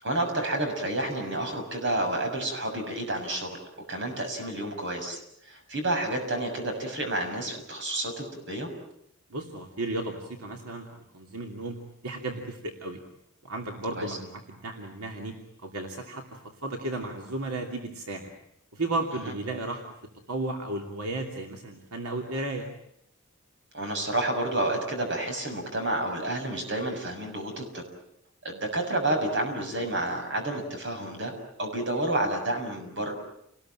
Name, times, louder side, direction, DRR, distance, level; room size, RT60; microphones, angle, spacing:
voice 1, 0.0-3.6 3.9-8.7 13.9-14.2 23.7-27.8 28.4-31.3 31.6-33.1, right 1 dB, 55° right, 4 dB, 6.8 m, -30 dB
voice 2, 9.3-11.8 12.0-13.0 13.4-15.3 15.6-18.3 18.7-19.8 20.3-22.7, right 2 dB, 85° right, 2 dB, 2.9 m, -34 dB
29.0 x 20.5 x 9.1 m, 0.76 s
head